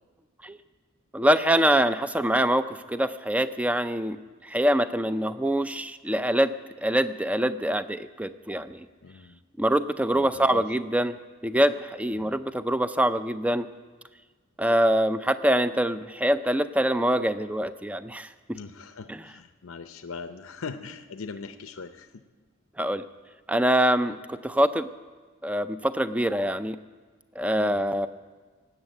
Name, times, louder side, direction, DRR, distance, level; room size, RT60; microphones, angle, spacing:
voice 1, 1.1-4.2 4.4-6.5 6.8-8.9 9.6-11.2 11.4-13.7 14.6-18.3 19.1-19.2 22.8-23.0 23.5-24.9 25.4-26.8 27.4-28.1, right 1 dB, 5° right, 12 dB, 0.4 m, -24 dB
voice 2, 9.0-9.4 10.1-10.7 12.1-12.3 18.5-22.1 27.5-27.8, left 4 dB, 80° left, 8 dB, 0.6 m, -40 dB
18.5 x 8.1 x 9.0 m, 1.4 s
head